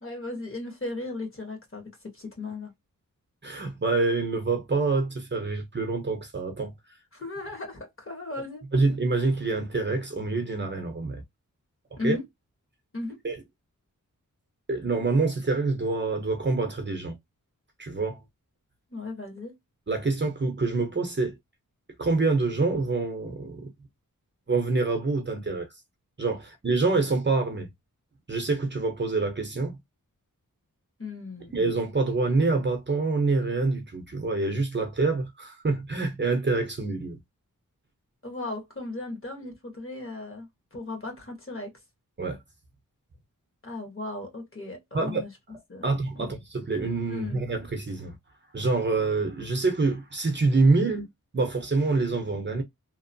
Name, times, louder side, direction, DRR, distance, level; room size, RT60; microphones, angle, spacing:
voice 1, 0.0-2.7 7.1-8.6 12.0-12.2 12.9-13.2 18.9-19.5 31.0-31.6 38.2-41.7 43.6-45.3 45.7-45.9 46.1-46.3 47.1-47.5, left 2 dB, 40° left, 1.2 m, -36 dB
voice 2, 3.4-6.7 8.7-11.2 12.0-12.2 13.2-13.4 14.7-17.2 17.8-18.2 19.9-21.4 22.0-23.7 24.5-25.7 26.2-27.7 28.3-29.7 31.5-37.2 42.2-42.4 44.9-45.2 45.8-48.1 48.5-51.1 51.3-52.6, right 3 dB, 35° right, 0.7 m, -26 dB
2.9 x 2.0 x 2.6 m
wide cardioid pair, 110°, 33 cm